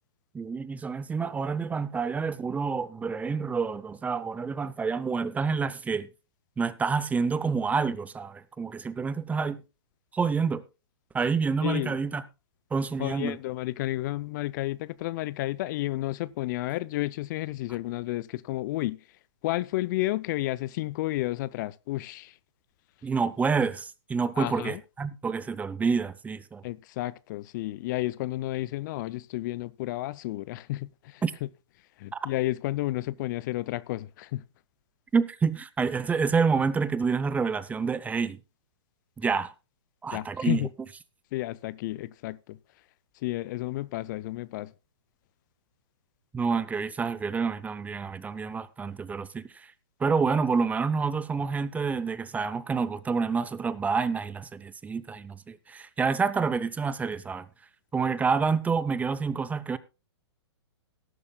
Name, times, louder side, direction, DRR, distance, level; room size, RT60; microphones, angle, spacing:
voice 1, 0.3-6.1 6.6-9.6 10.1-10.6 11.1-12.2 12.7-13.4 23.0-26.6 31.2-31.3 32.1-32.2 35.1-38.4 39.2-39.5 40.0-40.6 46.3-49.7 50.0-57.5 57.9-59.8, right 5 dB, 10° right, 0.6 m, -28 dB
voice 2, 11.6-12.0 13.0-19.0 19.4-22.4 24.4-24.8 26.6-31.2 32.0-34.4 40.1-40.7 41.3-42.6 43.2-44.7, left 17 dB, 40° left, 0.5 m, -31 dB
18.5 x 11.0 x 2.3 m
hypercardioid pair, 120°, 15 cm